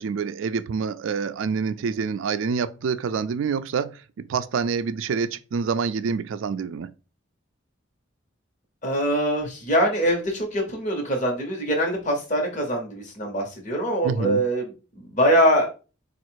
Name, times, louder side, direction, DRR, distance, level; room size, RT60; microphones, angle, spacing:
voice 1, 0.0-6.9 14.0-14.5, right 5 dB, 80° right, 0.4 m, -27 dB
voice 2, 8.8-15.7, equal, 40° left, 1.1 m, -23 dB
4.3 x 2.4 x 4.6 m
head